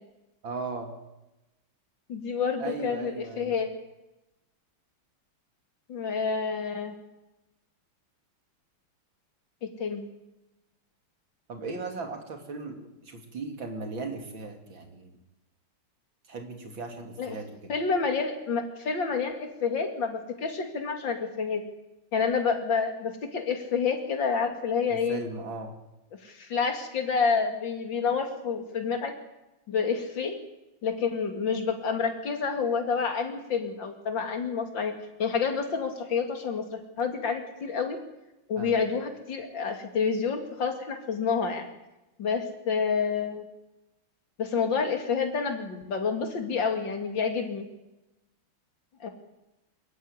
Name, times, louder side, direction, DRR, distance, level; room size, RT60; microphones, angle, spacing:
voice 1, 0.4-0.9 2.6-3.6 11.5-15.2 16.3-17.7 24.9-25.7 38.6-38.7, right 3 dB, 65° right, 5 dB, 3.4 m, -37 dB
voice 2, 2.1-3.7 5.9-6.9 9.6-10.1 17.2-17.4 17.7-21.6 22.1-25.2 26.2-29.1 29.7-30.4 30.8-34.9 35.2-38.0 38.5-41.7 42.2-43.4 44.4-47.6 49.0-49.1, left 5 dB, 60° left, 5 dB, 3.1 m, -28 dB
23.5 x 14.0 x 9.6 m, 0.97 s
omnidirectional pair, 2.3 m